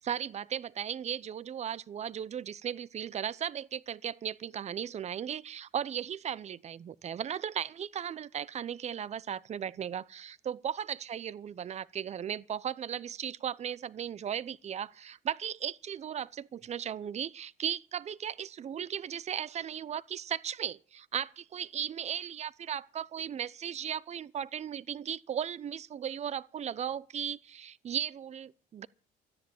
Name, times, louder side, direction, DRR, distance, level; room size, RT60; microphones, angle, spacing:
voice 1, 0.0-28.9, right 9 dB, 40° right, 0.7 m, -36 dB
13.0 x 10.5 x 8.6 m
cardioid pair, 110°, 17 cm